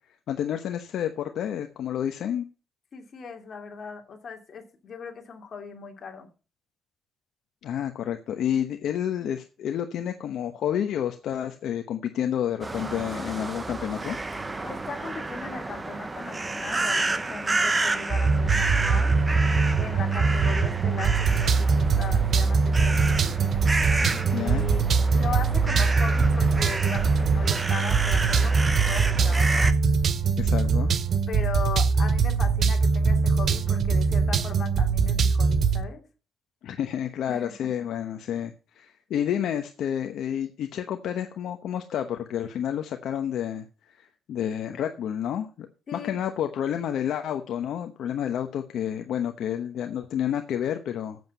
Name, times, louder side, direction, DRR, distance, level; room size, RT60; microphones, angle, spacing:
voice 1, 0.3-2.4 7.6-14.2 24.3-24.6 30.4-30.9 36.6-51.2, left 9 dB, 70° left, 0.9 m, -30 dB
voice 2, 2.9-6.3 14.6-19.2 19.8-23.3 24.0-24.8 25.1-29.7 31.3-36.0 37.3-37.5 45.9-46.2, left 5 dB, 45° left, 2.7 m, -38 dB
sound 1, 12.6-29.7, right 2 dB, 20° right, 0.9 m, -30 dB
sound 2, 18.1-35.8, right 5 dB, 50° right, 0.9 m, -22 dB
7.9 x 7.3 x 8.2 m
cardioid pair, 115°, 0 cm